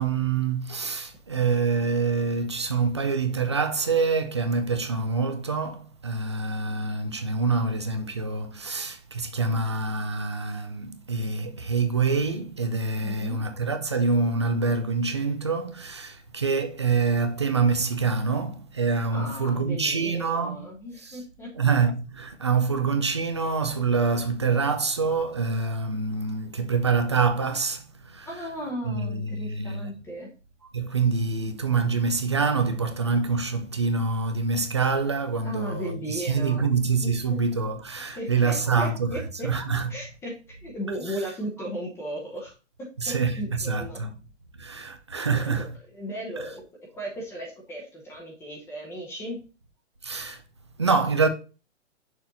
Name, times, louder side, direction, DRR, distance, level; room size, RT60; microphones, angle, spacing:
voice 1, 0.0-20.6 21.6-27.8 28.2-28.3 28.8-29.8 30.7-39.1 39.4-39.9 43.0-44.1 44.6-45.7 50.0-50.4 50.8-51.3, right 4 dB, 25° right, 0.3 m, -26 dB
voice 2, 13.0-13.4 19.1-21.5 28.3-30.3 35.4-36.7 37.0-37.4 38.2-39.5 39.9-42.5 43.1-44.0 45.3-46.6 46.9-49.4, equal, 5° left, 0.8 m, -36 dB
6.3 x 4.2 x 4.0 m
hypercardioid pair, 160°, 38 cm